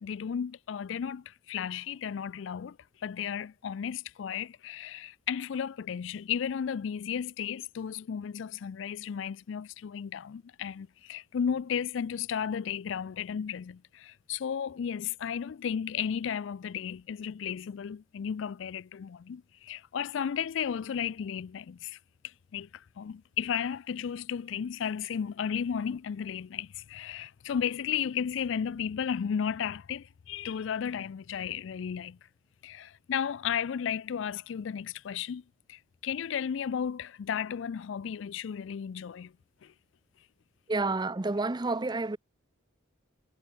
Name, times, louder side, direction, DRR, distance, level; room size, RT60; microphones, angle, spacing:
voice 1, 0.0-22.0 22.2-32.2 32.6-35.4 35.7-39.3 39.6-39.7, left 7 dB, 65° left, 0.4 m, -34 dB
voice 2, 40.7-42.2, right 3 dB, 20° right, 0.6 m, -29 dB
head